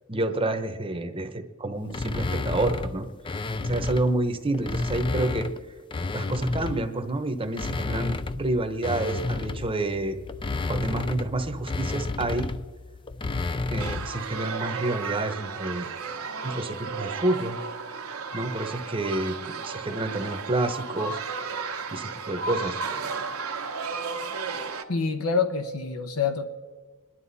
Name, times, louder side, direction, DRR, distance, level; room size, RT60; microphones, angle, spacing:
voice 1, 0.1-3.1 3.6-5.5 6.1-10.2 10.7-12.5 13.7-15.9 16.4-17.6 18.3-21.2 21.9-22.8, right 2 dB, 25° right, 7 dB, 0.9 m, -29 dB
sound 1, 1.9-4.1 4.5-7.0 7.4-14.2, left 3 dB, 25° left, 0.4 m, -31 dB
sound 2, 13.8-24.8, right 4 dB, 85° right, 1.2 m, -34 dB
voice 2, 24.9-26.5, left 5 dB, 85° left, 7 dB, 1.0 m, -26 dB
26.5 x 11.0 x 4.1 m, 1.5 s
head